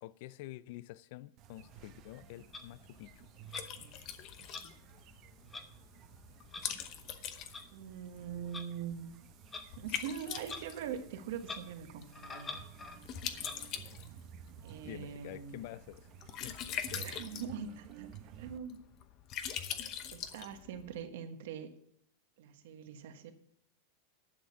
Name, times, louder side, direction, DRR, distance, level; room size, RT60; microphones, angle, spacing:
voice 1, 0.0-3.3 14.8-16.1 16.4-16.6 16.9-17.1, left 15 dB, 60° left, 0.4 m, -48 dB
sound 1, 1.4-18.6, right 11 dB, 40° right, 0.8 m, -55 dB
Liquid, 1.6-21.0, left 9 dB, 40° left, 0.9 m, -44 dB
Clock, 2.5-2.6 3.5-3.7 4.5-4.6 5.5-5.7 6.5-6.6 7.5-7.6 8.5-8.7 9.5-9.7 10.4-10.6 10.9-11.0 11.4-11.6 12.1-13.0 13.4-13.6, left 3 dB, 15° left, 1.0 m, -44 dB
voice 2, 7.7-9.1 9.8-12.5 13.3-13.5 14.6-15.5 16.9-18.8 20.1-21.7 22.4-23.3, right 8 dB, 70° right, 1.4 m, -43 dB
11.5 x 6.3 x 6.9 m
supercardioid pair, 140°, 0 cm